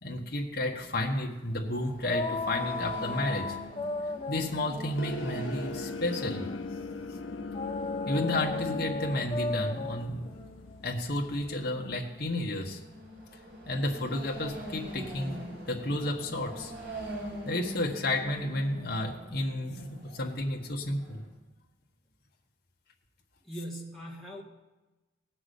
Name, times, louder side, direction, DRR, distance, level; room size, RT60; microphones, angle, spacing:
voice 1, 0.0-3.6 4.3-6.5 8.1-10.3 10.8-12.8 13.7-16.7 17.4-21.2, left 1 dB, 50° left, 0 dB, 1.5 m, -32 dB
sound 1, 1.5-21.3, right 1 dB, 60° right, 5.0 m, -45 dB
sound 2, 2.0-6.7 7.5-12.2, left 3 dB, 25° left, 0.6 m, -36 dB
sound 3, 5.0-11.6, left 3 dB, 75° left, 0.6 m, -39 dB
voice 2, 23.4-24.4, equal, ahead, -3 dB, 2.0 m, -40 dB
18.0 x 6.1 x 8.3 m, 1.1 s
head